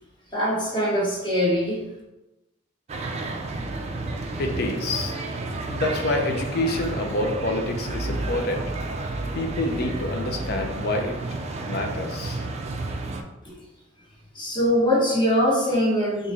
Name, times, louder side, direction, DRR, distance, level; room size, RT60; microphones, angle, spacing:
voice 1, 0.3-1.8 14.3-16.3, equal, 25° left, -4 dB, 1.0 m, -22 dB
sound 1, 2.9-13.2, right 2 dB, 35° right, 0.3 m, -31 dB
voice 2, 4.4-5.2 5.7-8.6 9.3-11.2 11.6-12.4, left 2 dB, 55° left, 4 dB, 0.5 m, -27 dB
3.0 x 2.6 x 3.6 m, 1.0 s
head